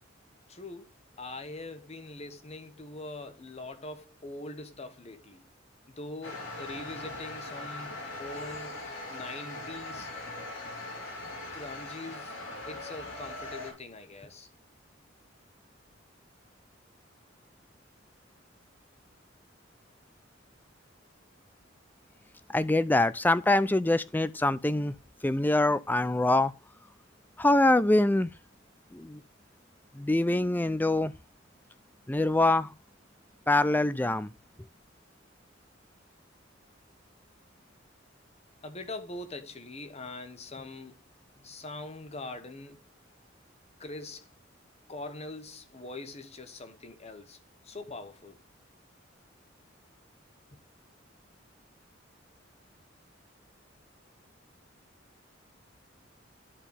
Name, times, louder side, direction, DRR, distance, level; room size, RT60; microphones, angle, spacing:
voice 1, 0.5-0.9 1.2-5.4 5.9-8.8 9.1-10.1 11.5-12.4 12.6-14.5 38.6-41.0 41.4-42.8 43.8-44.3 44.9-47.4 47.6-48.4, left 2 dB, 35° left, 1.2 m, -42 dB
sound 1, 6.2-13.7, left 2 dB, 90° left, 3.6 m, -40 dB
voice 2, 22.5-24.9 25.2-26.5 27.4-28.3 28.9-29.2 30.0-31.1 32.1-32.7 33.5-34.3, left 2 dB, 10° left, 0.4 m, -24 dB
11.0 x 4.5 x 3.5 m
head